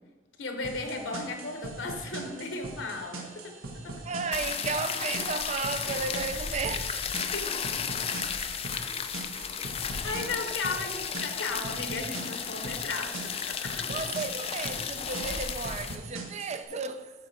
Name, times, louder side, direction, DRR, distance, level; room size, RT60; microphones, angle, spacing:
voice 1, 0.4-4.0 7.3-7.5 10.0-13.8, left 3 dB, 70° left, 1.1 m, -35 dB
sound 1, 0.6-16.6, right 3 dB, 85° right, 1.4 m, -42 dB
voice 2, 4.0-7.1 13.9-17.1, right 4 dB, 35° right, 0.5 m, -33 dB
sound 2, 4.3-16.0, left 7 dB, 30° left, 0.4 m, -34 dB
8.5 x 6.4 x 4.3 m
head